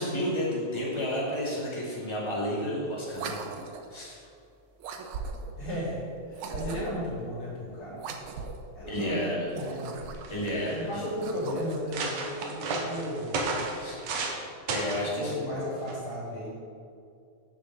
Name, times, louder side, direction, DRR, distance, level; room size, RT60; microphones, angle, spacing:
voice 1, 0.0-3.4 3.9-4.2 8.9-9.5 10.3-11.0 13.8-14.0 14.7-15.8, equal, 10° left, -6 dB, 2.2 m, -31 dB
sound 1, 3.1-4.0 4.8-5.6 6.3-7.1 8.0-8.7 9.4-10.4 11.0-11.9, right 5 dB, 85° right, 1.1 m, -39 dB
voice 2, 5.5-8.1 8.7-10.0 10.7-13.4 15.0-16.6, equal, 45° left, -8 dB, 3.8 m, -35 dB
sound 2, 9.8-9.9 10.1-10.7 11.3-11.4 11.7-14.4 14.7-15.1 15.9-16.1, right 3 dB, 70° right, 2.2 m, -32 dB
7.6 x 6.7 x 7.7 m, 2.4 s
omnidirectional pair, 3.3 m